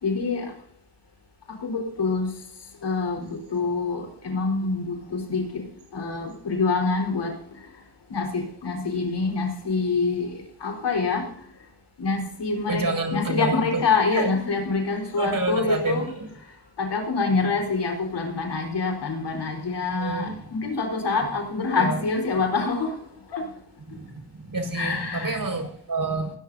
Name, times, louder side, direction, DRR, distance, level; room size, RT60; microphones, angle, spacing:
voice 1, 0.0-0.5 1.6-2.3 2.8-5.6 5.9-7.3 8.1-10.3 10.6-11.2 12.0-12.8 13.1-16.0 16.8-22.9 23.3-23.4 24.7-25.4, left 4 dB, 70° left, 1 dB, 4.6 m, -26 dB
voice 2, 12.7-13.8 14.1-14.3 15.2-16.3 20.0-20.4 21.8-22.0 23.9-26.4, right 2 dB, 50° right, 4 dB, 5.6 m, -28 dB
20.0 x 16.5 x 2.8 m, 0.63 s
cardioid pair, 55°, 42 cm